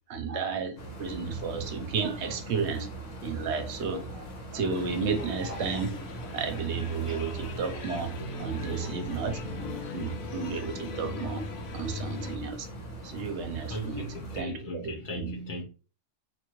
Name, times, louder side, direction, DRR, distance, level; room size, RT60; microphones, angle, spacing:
voice 1, 0.1-2.9 3.2-6.0 6.3-11.4 11.7-12.7 13.0-14.1 14.3-15.3, right 5 dB, 65° right, 0.9 m, -33 dB
sound 1, 0.8-14.4, right 2 dB, 65° left, 1.4 m, -41 dB
sound 2, 4.7-12.4, left 3 dB, 85° left, 1.1 m, -39 dB
voice 2, 13.7-15.6, equal, 40° left, 1.3 m, -37 dB
3.5 x 2.7 x 3.0 m
omnidirectional pair, 1.4 m